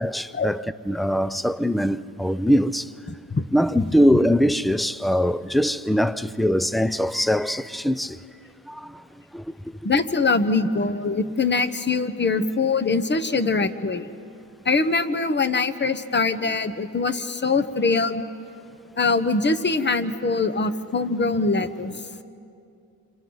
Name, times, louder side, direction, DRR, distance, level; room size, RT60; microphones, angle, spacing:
voice 1, 0.0-2.9 3.5-8.2 8.7-9.0 9.3-9.5, equal, ahead, 0.5 m, -22 dB
voice 2, 9.8-14.1 14.6-18.2 19.0-22.0, left 3 dB, 30° left, 1.1 m, -23 dB
29.5 x 27.0 x 4.0 m
cardioid pair, 70°, 38 cm